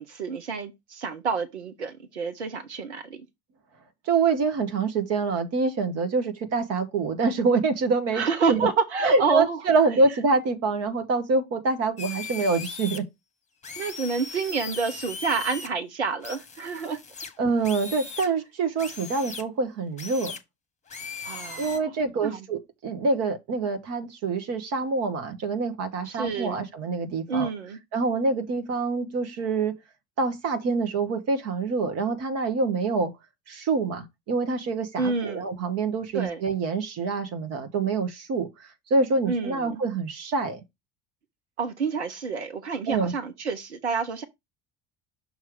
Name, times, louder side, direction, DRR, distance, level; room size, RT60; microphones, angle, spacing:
voice 1, 0.0-3.3 8.1-9.6 13.8-17.0 21.2-21.9 22.2-22.5 26.0-26.7 27.3-27.8 35.0-35.5 36.1-36.4 39.3-39.8 41.6-44.2, right 5 dB, 80° right, 0.8 m, -28 dB
voice 2, 4.1-8.7 9.0-13.1 17.4-20.3 21.6-27.5 27.9-29.7 30.2-33.1 33.5-40.6 42.9-43.1, right 4 dB, 50° right, 1.4 m, -26 dB
sound 1, 12.0-13.0 13.6-15.7 16.2-18.3 18.8-19.4 20.0-20.4 20.9-21.8, left 5 dB, 20° left, 1.1 m, -38 dB
6.5 x 3.1 x 5.1 m
figure-of-eight pair, 60°, 34 cm